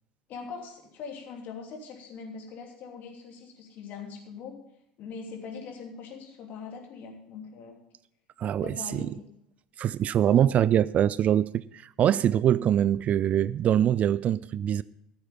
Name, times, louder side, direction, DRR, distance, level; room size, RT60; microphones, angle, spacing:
voice 1, 0.3-4.6 5.0-7.8 8.6-9.3 10.3-10.7, left 5 dB, 45° left, 2.9 m, -42 dB
voice 2, 8.4-9.1 9.8-11.5 11.7-14.8, right 10 dB, 35° right, 0.3 m, -23 dB
14.5 x 8.0 x 5.3 m
figure-of-eight pair, 70°, 4 cm